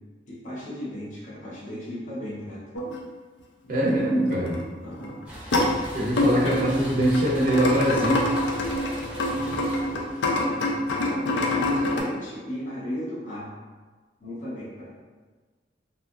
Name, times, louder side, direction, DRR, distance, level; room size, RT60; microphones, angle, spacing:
voice 1, 0.3-2.6 4.8-5.3 9.3-10.7 11.0-13.5 14.2-15.0, left 1 dB, 45° left, -8 dB, 0.8 m, -36 dB
sound 1, 2.7-3.0 3.9-4.0 4.3-4.7 5.0-5.7 6.2-12.0, left 2 dB, 85° left, 0.4 m, -26 dB
voice 2, 3.7-4.6 5.9-8.3, right 1 dB, 50° right, -6 dB, 0.5 m, -23 dB
sound 2, 5.3-11.1, equal, 10° right, 0.6 m, -40 dB
2.7 x 2.4 x 2.3 m, 1.4 s
head